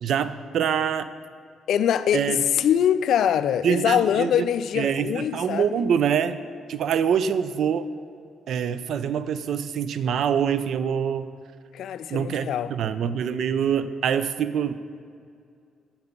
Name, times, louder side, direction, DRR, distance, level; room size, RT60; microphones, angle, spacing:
voice 1, 0.0-1.1 2.1-2.4 3.6-4.4 4.8-6.4 6.7-7.9 8.5-11.3 12.1-14.7, right 8 dB, 70° right, 0.4 m, -25 dB
voice 2, 1.7-5.8 11.7-12.7, left 9 dB, 70° left, 0.3 m, -23 dB
8.1 x 5.9 x 5.2 m
cardioid pair, 90°, 0 cm